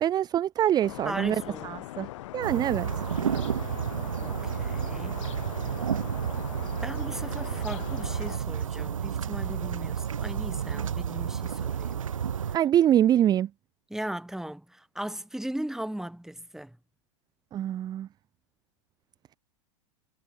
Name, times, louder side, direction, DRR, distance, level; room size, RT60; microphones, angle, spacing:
voice 1, 0.0-2.9 12.5-13.5 17.5-18.1, right 11 dB, 25° right, 0.4 m, -25 dB
sound 1, 0.8-8.4, left 16 dB, 70° left, 6.7 m, -41 dB
voice 2, 1.0-1.8 4.2-5.2 6.8-12.0 13.9-16.8, right 1 dB, 5° right, 3.0 m, -37 dB
sound 2, 2.4-12.6, right 8 dB, 90° right, 1.1 m, -31 dB
hypercardioid pair, 100°, 16 cm